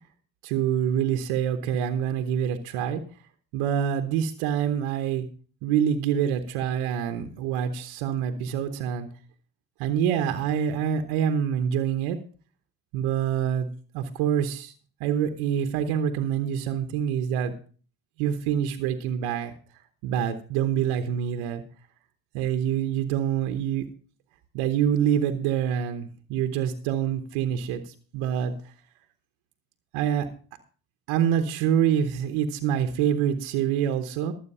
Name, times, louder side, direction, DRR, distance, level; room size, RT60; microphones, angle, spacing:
voice 1, 0.4-3.0 3.5-5.3 5.6-9.1 9.8-12.2 12.9-13.7 13.9-14.7 15.0-17.5 18.2-19.5 20.0-21.6 22.3-23.8 24.5-28.7 29.9-30.3 31.1-34.3, right 9 dB, 90° right, 7 dB, 1.1 m, -26 dB
12.0 x 8.2 x 5.5 m, 0.41 s
supercardioid pair, 70°, 47 cm